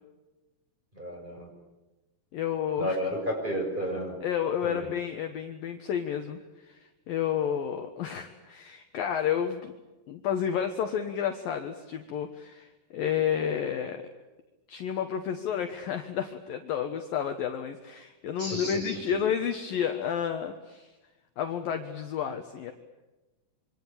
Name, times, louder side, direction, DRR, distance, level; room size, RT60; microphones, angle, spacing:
voice 1, 1.0-1.5 2.8-4.1 4.6-4.9 18.4-18.8, equal, 10° right, 2 dB, 6.4 m, -32 dB
voice 2, 2.3-3.0 4.2-6.4 6.7-9.7 10.1-14.0 14.7-20.9 21.4-22.7, left 8 dB, 70° left, 6 dB, 2.2 m, -31 dB
26.5 x 25.5 x 8.8 m, 1.1 s
omnidirectional pair, 5.9 m